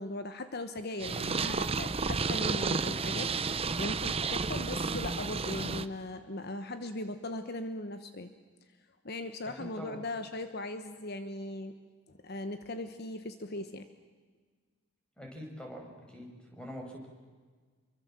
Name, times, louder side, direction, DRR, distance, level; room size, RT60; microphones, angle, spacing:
voice 1, 0.0-8.3 9.0-11.7 12.1-13.8, left 2 dB, 50° left, 9 dB, 1.2 m, -39 dB
Purr, 1.0-5.9, right 4 dB, 30° right, 0.7 m, -32 dB
voice 2, 9.6-10.0 15.2-17.1, equal, 5° left, 1 dB, 5.7 m, -44 dB
28.5 x 24.0 x 7.6 m, 1.5 s
head